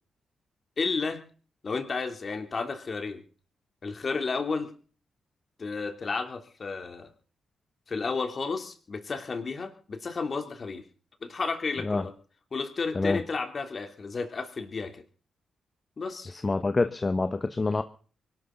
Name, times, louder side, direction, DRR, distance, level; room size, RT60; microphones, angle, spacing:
voice 1, 0.8-1.2 1.6-3.2 3.8-4.7 5.6-7.1 7.9-10.8 11.2-12.1 12.5-15.0 16.0-16.3, left 4 dB, 50° left, 7 dB, 3.3 m, -32 dB
voice 2, 16.3-17.8, left 3 dB, 35° left, 10 dB, 1.2 m, -27 dB
24.0 x 12.5 x 4.0 m, 0.40 s
hypercardioid pair, 40°, 0 cm